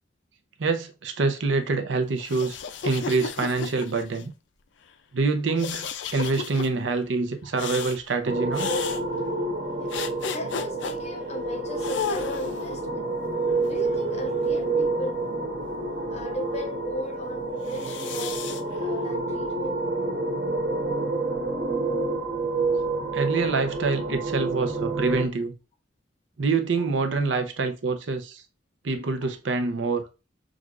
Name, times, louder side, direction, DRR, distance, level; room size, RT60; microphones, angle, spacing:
voice 1, 0.6-2.6 2.8-4.3 5.1-8.7 23.1-25.5 26.4-28.4 28.8-30.0, right 4 dB, 80° right, 0.6 m, -26 dB
sound 1, 2.2-4.2 5.6-6.7 7.6-8.0 8.5-9.0 9.9-10.9 11.8-12.7 13.5-14.6 17.7-18.6, left 6 dB, 70° left, 0.4 m, -33 dB
sound 2, 8.2-25.2, right 3 dB, 50° right, 0.8 m, -28 dB
voice 2, 10.3-13.1 13.7-15.2 16.1-18.4 18.8-19.8 26.8-26.9 29.2-29.3, left 1 dB, 35° left, 0.7 m, -36 dB
6.3 x 2.4 x 2.4 m
head